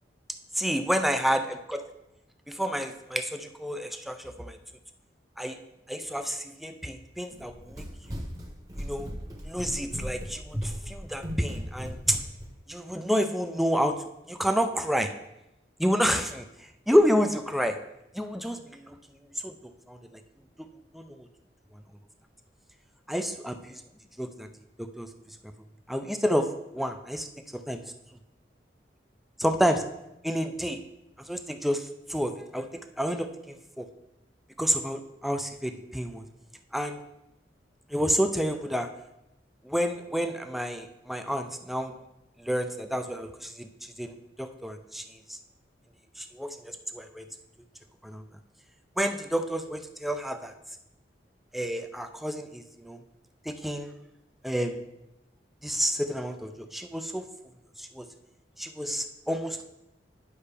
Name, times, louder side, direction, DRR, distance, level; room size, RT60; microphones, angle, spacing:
voice 1, 0.6-1.9 2.5-4.6 5.4-5.6 5.9-8.2 8.8-9.1 9.4-12.2 12.7-14.0 14.3-15.1 15.8-16.4 16.9-17.8 18.1-19.0 19.4-19.5 19.9-20.2 20.6-20.7 20.9-21.3 23.1-23.8 24.2-24.5 24.8-25.1 25.9-27.3 27.5-27.8 29.4-29.8 30.2-30.8 31.3-32.7 33.0-33.9 34.6-36.2 36.7-37.0 37.9-38.9 39.6-41.9 42.4-45.0 45.3-45.4 46.2-47.3 48.0-48.2 49.0-50.5 51.5-53.0 53.5-53.9 54.4-54.8 55.6-57.2 57.8-58.1 58.6-59.7, equal, ahead, 7 dB, 0.4 m, -29 dB
Run, 7.3-12.5, equal, 20° right, 1.2 m, -37 dB
9.9 x 5.5 x 3.4 m, 0.89 s
head